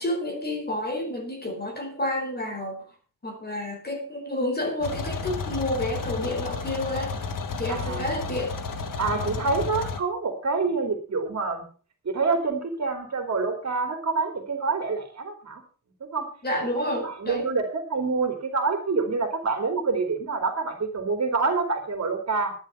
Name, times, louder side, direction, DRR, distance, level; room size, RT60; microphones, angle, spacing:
voice 1, 0.0-2.8 3.2-7.1 7.6-8.5 9.3-9.4 16.4-17.5, left 1 dB, 30° left, 3 dB, 4.8 m, -29 dB
sound 1, 4.8-10.0, left 4 dB, 70° left, 1.8 m, -32 dB
voice 2, 7.7-8.1 9.0-11.6 12.0-15.6 16.0-16.3 16.8-22.5, right 4 dB, 50° right, 5 dB, 3.2 m, -27 dB
12.0 x 10.5 x 5.7 m, 0.38 s
wide cardioid pair, 140°, 33 cm